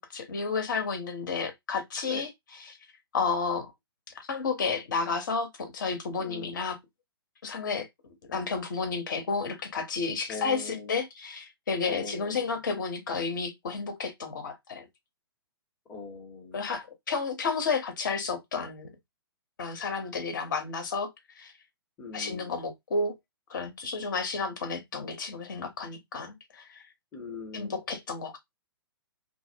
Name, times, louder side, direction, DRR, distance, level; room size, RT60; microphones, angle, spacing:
voice 1, 0.0-2.7 3.1-3.7 4.2-6.8 7.4-7.9 8.3-14.9 16.5-18.9 19.6-21.1 21.4-21.5 22.1-23.1 23.5-26.8 27.5-28.4, left 4 dB, 50° left, 0.9 m, -31 dB
voice 2, 6.2-6.5 10.3-11.0 11.9-12.4 15.9-16.6 22.0-22.5 27.1-27.8, left 4 dB, 15° left, 0.8 m, -41 dB
2.6 x 2.0 x 2.7 m
figure-of-eight pair, 120°, 13 cm